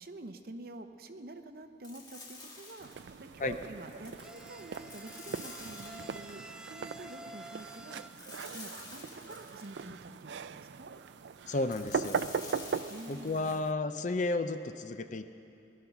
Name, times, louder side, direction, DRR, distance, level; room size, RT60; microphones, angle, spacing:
voice 1, 0.0-8.0 8.5-10.9 12.9-13.7, right 2 dB, 55° right, 8 dB, 0.8 m, -47 dB
sound 1, 1.8-3.2 3.9-6.4 8.2-9.9 11.7-13.4, left 2 dB, 25° left, 2.0 m, -49 dB
sound 2, 2.8-13.7, right 5 dB, 75° right, 0.4 m, -40 dB
sound 3, 3.9-8.1, right 1 dB, 5° right, 0.5 m, -50 dB
voice 2, 11.5-12.2 13.1-15.3, left 2 dB, 45° left, 9 dB, 0.6 m, -32 dB
19.5 x 11.5 x 5.9 m, 2.8 s
head